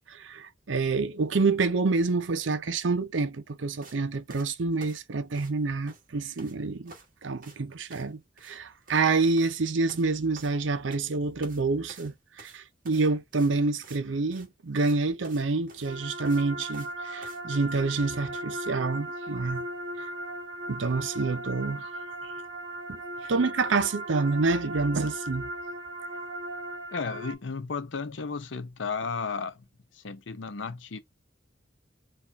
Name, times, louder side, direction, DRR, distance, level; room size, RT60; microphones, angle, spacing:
voice 1, 0.1-6.9 7.2-19.6 20.7-21.9 22.9-25.5, right 3 dB, 80° right, 0.6 m, -27 dB
sound 1, 3.8-4.0 4.3-5.6 5.9-6.6 6.8-7.1 7.4-7.6 7.9-8.1 8.4-8.6 8.8-9.1 9.4-9.6 9.9-11.1 11.4-11.6 11.9-14.0 14.3-14.5 14.8-15.0 15.2-15.4 15.7-16.9 17.2-17.4, right 3 dB, 45° right, 1.4 m, -50 dB
sound 2, 15.8-27.3, right 1 dB, 30° right, 2.2 m, -37 dB
voice 2, 26.9-29.6 29.9-31.0, left 5 dB, 75° left, 0.6 m, -34 dB
4.3 x 2.5 x 3.4 m
head